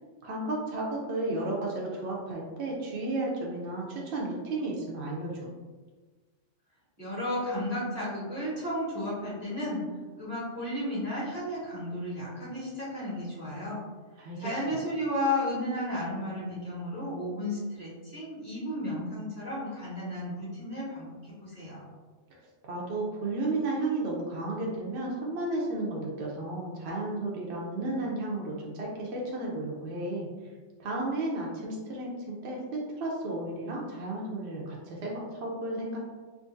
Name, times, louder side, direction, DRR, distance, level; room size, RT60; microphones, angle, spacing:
voice 1, 0.2-5.5 14.2-14.5 22.7-30.3 30.8-36.0, right 2 dB, 65° right, -3 dB, 0.9 m, -33 dB
voice 2, 7.0-9.8 10.2-13.8 14.4-21.9, left 1 dB, 35° left, -9 dB, 1.7 m, -33 dB
3.7 x 2.7 x 2.6 m, 1.3 s
omnidirectional pair, 1.3 m